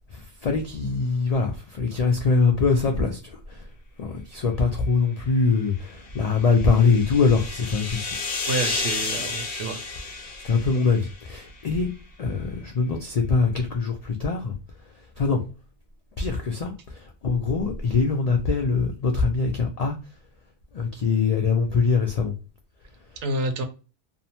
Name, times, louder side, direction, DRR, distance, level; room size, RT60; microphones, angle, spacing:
voice 1, 0.1-3.7 4.0-8.2 10.4-11.9 12.2-14.5 15.2-15.4 16.2-19.9 20.7-22.3, left 4 dB, 70° left, 0.3 m, -23 dB
sound 1, 5.9-11.5, left 4 dB, 55° left, 0.7 m, -32 dB
voice 2, 8.5-9.8 23.2-23.6, right 2 dB, 80° right, 0.9 m, -28 dB
2.6 x 2.1 x 2.8 m
omnidirectional pair, 1.2 m